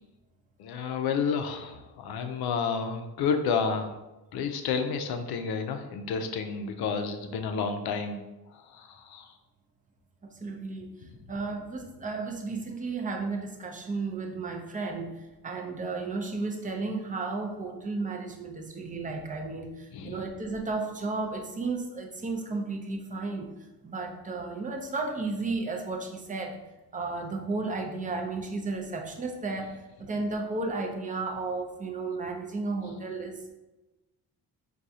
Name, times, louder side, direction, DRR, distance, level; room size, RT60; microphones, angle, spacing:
voice 1, 0.6-3.9 4.3-8.2 9.1-9.2 19.9-20.2, left 5 dB, 70° left, 7 dB, 0.6 m, -30 dB
voice 2, 10.2-10.9 11.3-23.5 23.8-26.6 26.9-29.7 30.0-33.5, right 3 dB, 20° right, 2 dB, 0.4 m, -33 dB
4.7 x 2.3 x 2.7 m, 1.0 s
cardioid pair, 115°, 40 cm